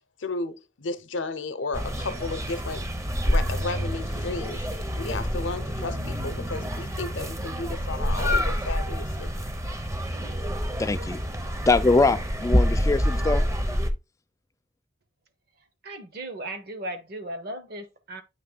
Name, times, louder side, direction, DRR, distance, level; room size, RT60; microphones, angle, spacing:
voice 1, 0.2-2.9 3.3-9.3, left 3 dB, 75° left, 0.7 m, -33 dB
sound 1, 1.7-13.9, equal, 15° right, 0.6 m, -27 dB
voice 2, 10.8-11.2 11.7-13.4, left 3 dB, 15° left, 0.3 m, -22 dB
voice 3, 15.8-18.2, right 1 dB, 55° right, 1.1 m, -36 dB
8.6 x 3.1 x 3.8 m
head